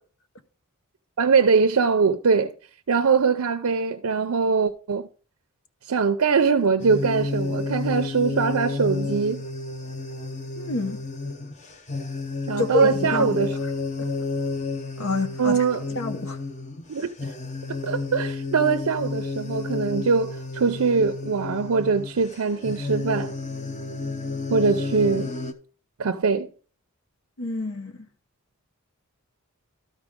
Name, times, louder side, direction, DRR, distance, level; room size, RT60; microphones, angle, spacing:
voice 1, 1.2-2.5 2.9-5.1 5.9-9.4 12.5-13.6 15.4-15.8 16.9-17.1 17.7-23.3 24.5-25.3 26.0-26.5, right 5 dB, 75° right, 0.6 m, -22 dB
sound 1, 6.8-25.5, left 3 dB, 35° left, 0.8 m, -31 dB
voice 2, 10.6-11.0 12.6-13.4 14.0-14.1 15.0-15.6 15.9-16.4 27.4-28.1, left 3 dB, 70° left, 0.9 m, -28 dB
13.0 x 5.0 x 3.6 m
head